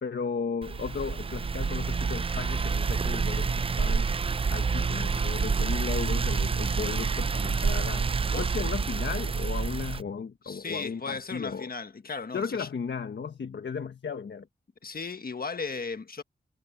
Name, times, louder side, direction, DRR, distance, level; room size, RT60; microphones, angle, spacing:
voice 1, 0.0-4.1 4.5-8.1 8.4-11.7 12.3-14.5, left 6 dB, 75° left, 1.5 m, -35 dB
sound 1, 0.6-10.0, right 5 dB, 30° right, 0.4 m, -28 dB
voice 2, 10.4-12.7 14.8-16.2, left 4 dB, 55° left, 1.4 m, -36 dB
wide cardioid pair, 80°, 19 cm